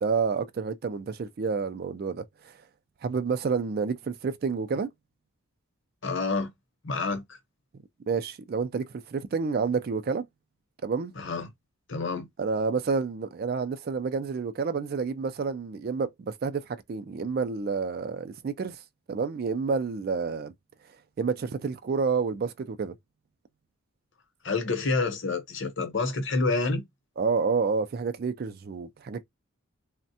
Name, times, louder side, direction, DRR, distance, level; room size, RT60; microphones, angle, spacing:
voice 1, 0.0-2.5 3.0-4.9 8.1-10.2 10.8-11.1 12.4-18.8 19.1-20.5 21.2-22.9 27.2-29.2, right 5 dB, 45° right, 0.3 m, -29 dB
voice 2, 6.0-6.5 6.8-7.4 11.2-11.5 11.9-12.3 24.4-26.8, left 3 dB, 55° left, 0.9 m, -28 dB
3.4 x 2.1 x 2.7 m
head